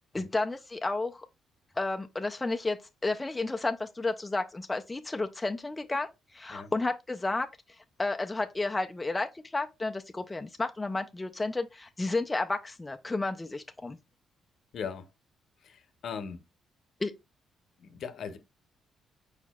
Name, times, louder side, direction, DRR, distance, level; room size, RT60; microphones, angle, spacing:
voice 1, 0.1-1.3 1.8-2.8 3.0-7.5 8.0-14.0 17.0-17.1, left 2 dB, 15° left, 0.4 m, -32 dB
voice 2, 14.7-15.1 15.6-16.4 17.8-18.4, left 6 dB, 65° left, 0.8 m, -39 dB
4.9 x 4.5 x 2.3 m
cardioid pair, 90°, 0 cm